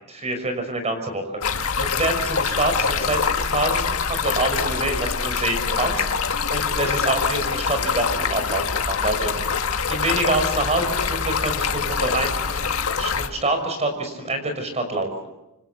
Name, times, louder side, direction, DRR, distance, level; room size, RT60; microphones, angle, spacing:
voice 1, 0.1-1.3 1.8-3.2 3.5-9.5 9.9-12.7 13.0-15.3, right 2 dB, 30° right, 6 dB, 5.8 m, -26 dB
Stream, 1.4-13.3, left 5 dB, 70° left, 1.8 m, -24 dB
28.0 x 25.0 x 7.0 m, 0.94 s
head